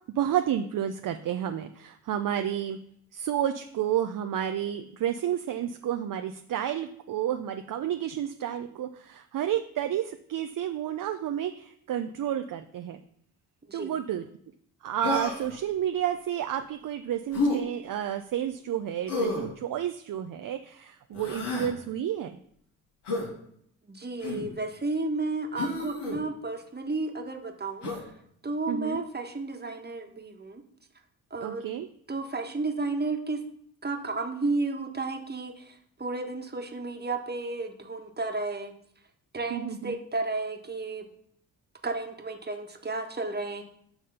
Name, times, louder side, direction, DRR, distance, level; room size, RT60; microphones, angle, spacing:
voice 1, 0.2-2.8 3.1-13.0 13.7-14.3 14.8-22.4 28.7-29.0 31.4-31.9 39.5-39.9, right 10 dB, 50° right, 7 dB, 0.6 m, -31 dB
Human voice, 15.0-15.6 17.3-17.6 19.1-19.5 21.1-21.7 23.1-23.3 24.2-24.5 25.6-26.2 27.8-28.1, left 2 dB, 65° left, 2.4 m, -30 dB
voice 2, 23.9-28.0 28.4-30.6 31.3-31.6 32.1-33.4 33.8-38.7 39.3-41.0 41.8-43.6, right 3 dB, 20° right, 4 dB, 1.5 m, -32 dB
8.7 x 3.6 x 5.6 m, 0.67 s
hypercardioid pair, 40°, 43 cm